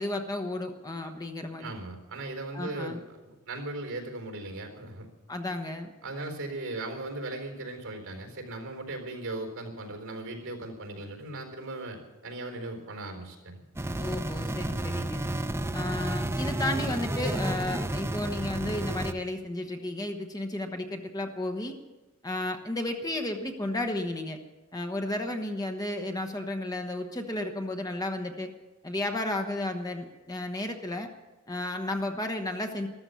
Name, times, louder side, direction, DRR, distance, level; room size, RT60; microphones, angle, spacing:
voice 1, 0.0-1.7 2.5-3.0 5.3-5.9 14.0-15.2 15.7-21.8 22.2-24.4 24.7-28.5 28.8-31.1 31.5-32.9, left 1 dB, 15° left, 5 dB, 1.1 m, -33 dB
voice 2, 1.6-3.0 3.2-5.1 6.0-13.6, right 2 dB, 65° right, 3 dB, 4.2 m, -38 dB
sound 1, 13.8-19.1, right 1 dB, 10° right, 0.6 m, -31 dB
14.0 x 13.5 x 7.0 m, 1.1 s
head